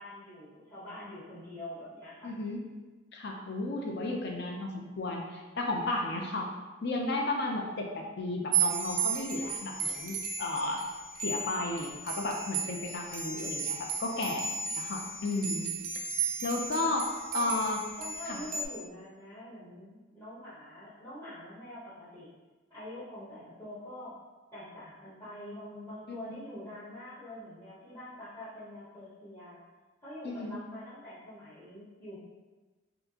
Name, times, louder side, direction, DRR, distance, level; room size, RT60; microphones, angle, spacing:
voice 1, 0.0-2.3 16.0-16.8 17.3-17.5 18.0-22.3 22.7-24.2 24.5-29.6 30.0-32.2, left 1 dB, 15° left, -12 dB, 1.0 m, -45 dB
voice 2, 2.2-2.6 3.1-6.5 6.8-10.8 11.2-15.7 16.4-17.8 18.3-18.4 26.1-26.3 30.2-30.6, left 2 dB, 55° left, 1 dB, 0.5 m, -33 dB
sound 1, 8.5-18.6, right 6 dB, 40° right, 0.3 m, -34 dB
4.3 x 2.7 x 2.8 m, 1.2 s
head